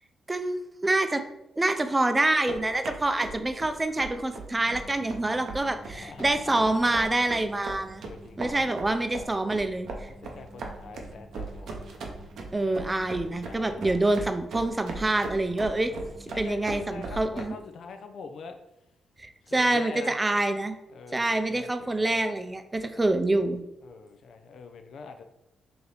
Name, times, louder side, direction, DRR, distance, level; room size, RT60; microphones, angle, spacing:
voice 1, 0.3-1.2 1.6-8.1 8.4-10.1 12.5-15.9 16.4-17.5 19.2-20.8 21.1-23.6, right 2 dB, 25° right, 8 dB, 0.5 m, -26 dB
sound 1, 2.3-17.4, right 3 dB, 70° right, 0.6 m, -39 dB
sound 2, 4.5-17.4, right 1 dB, 15° left, 1.2 m, -51 dB
voice 2, 5.9-7.1 8.0-8.8 10.1-11.9 13.5-14.0 15.9-18.6 19.4-20.2 20.9-22.2 22.9-23.0 23.8-25.2, left 5 dB, 70° left, 7 dB, 0.4 m, -44 dB
3.2 x 2.8 x 3.9 m, 0.89 s
supercardioid pair, 50°, 0 cm